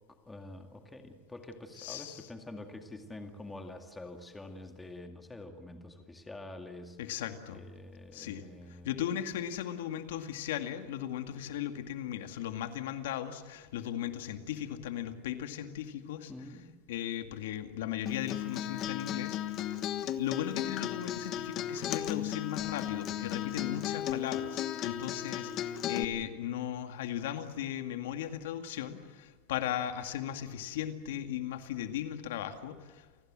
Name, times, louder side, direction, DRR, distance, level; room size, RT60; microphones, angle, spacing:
voice 1, 0.2-7.2 7.5-9.0 11.3-11.4 16.3-16.7 25.8-26.3, left 2 dB, 10° left, 5 dB, 2.1 m, -47 dB
voice 2, 1.8-2.3 7.0-7.6 8.1-16.3 16.9-19.8 20.2-33.1, left 11 dB, 80° left, 7 dB, 2.1 m, -37 dB
Acoustic guitar, 18.1-26.0, left 11 dB, 35° left, 1.2 m, -35 dB
29.0 x 20.0 x 7.7 m, 1.5 s
supercardioid pair, 155°, 0 cm